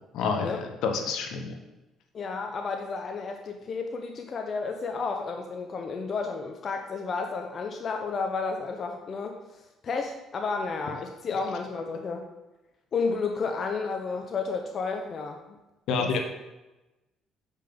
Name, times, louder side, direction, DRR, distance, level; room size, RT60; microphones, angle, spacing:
voice 1, 0.1-1.6 15.9-16.2, left 5 dB, 75° left, 4 dB, 1.0 m, -28 dB
voice 2, 2.1-9.4 9.8-12.3 12.9-15.4 16.0-16.2, left 4 dB, 45° left, 4 dB, 0.7 m, -32 dB
7.4 x 5.4 x 3.6 m, 1.0 s
supercardioid pair, 80°, 0 cm